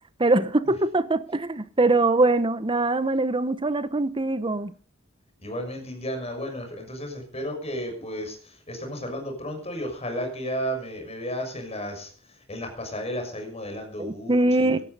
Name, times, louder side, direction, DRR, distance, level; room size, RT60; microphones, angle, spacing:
voice 1, 0.2-4.7 14.0-14.8, right 2 dB, 25° right, 0.8 m, -22 dB
voice 2, 5.4-12.1 12.5-14.8, equal, 30° left, 6.5 m, -33 dB
17.0 x 12.5 x 5.5 m
head